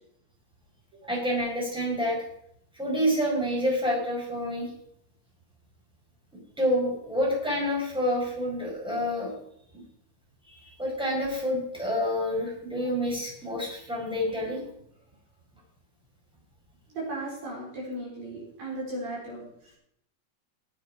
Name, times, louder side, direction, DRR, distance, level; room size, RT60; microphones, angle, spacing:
voice 1, 1.1-2.2 2.7-4.7 6.6-9.3 9.7-9.8 10.5-14.6, equal, ahead, -3 dB, 4.4 m, -28 dB
voice 2, 16.9-19.8, right 1 dB, 45° right, -3 dB, 5.4 m, -37 dB
18.0 x 9.0 x 5.0 m, 0.71 s
omnidirectional pair, 5.8 m